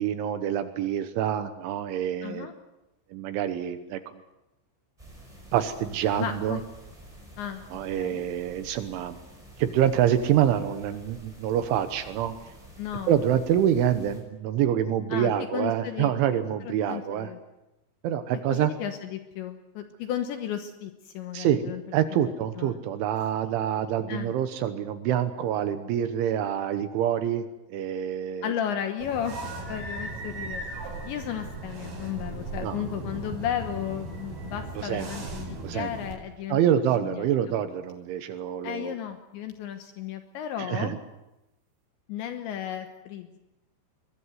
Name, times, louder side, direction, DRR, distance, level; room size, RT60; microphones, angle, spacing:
voice 1, 0.0-2.5 3.1-4.2 5.5-6.6 7.7-9.2 9.6-12.4 13.1-17.3 18.0-18.7 21.3-28.5 32.6-32.8 34.8-35.1 35.6-35.9 36.5-38.9 40.6-41.0, right 10 dB, 75° right, 10 dB, 3.3 m, -26 dB
voice 2, 2.2-2.5 6.2-6.6 7.4-7.6 8.0-8.2 12.8-13.1 15.1-16.4 16.6-17.4 18.5-21.8 22.1-22.2 22.6-22.8 24.1-24.3 28.4-29.4 29.7-30.6 31.0-37.3 38.6-41.0 42.1-43.4, left 10 dB, 70° left, 6 dB, 3.1 m, -34 dB
sound 1, 5.0-14.2, right 1 dB, 5° right, 5.5 m, -49 dB
sound 2, 29.0-36.1, right 2 dB, 50° right, 6.3 m, -37 dB
22.0 x 21.5 x 8.0 m, 0.96 s
omnidirectional pair, 5.9 m